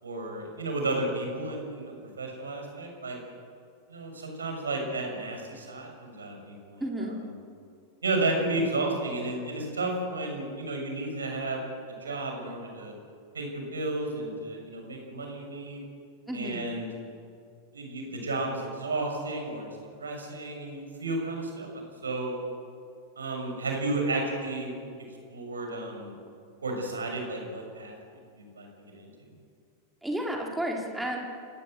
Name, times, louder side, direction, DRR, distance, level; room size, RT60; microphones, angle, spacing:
voice 1, 0.0-3.2 3.9-6.8 8.0-11.6 12.0-12.9 13.3-15.8 16.3-16.9 17.7-19.7 20.0-22.4 23.2-24.7 25.3-26.1 26.6-28.0 28.3-28.7 28.9-29.3, right 2 dB, 75° right, 2 dB, 6.6 m, -32 dB
voice 2, 6.8-7.2 16.3-16.7 30.0-31.2, right 1 dB, 5° right, 0 dB, 3.9 m, -32 dB
29.5 x 18.0 x 8.1 m, 2.2 s
figure-of-eight pair, 90°, 0 cm